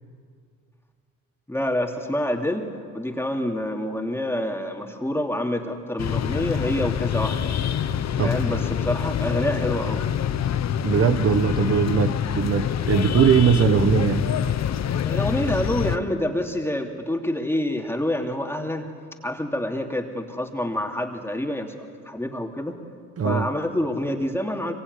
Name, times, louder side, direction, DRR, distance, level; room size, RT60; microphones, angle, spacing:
voice 1, 1.5-2.7 2.9-7.5 8.2-10.0 15.0-18.9 19.2-22.8 23.2-24.7, left 1 dB, 10° left, 2 dB, 2.9 m, -27 dB
sound 1, 6.0-16.0, left 9 dB, 60° left, 1.2 m, -25 dB
voice 2, 10.8-14.3 23.2-23.5, right 7 dB, 50° right, 7 dB, 1.2 m, -20 dB
24.5 x 23.0 x 9.6 m, 2.2 s
cardioid pair, 90°, 30 cm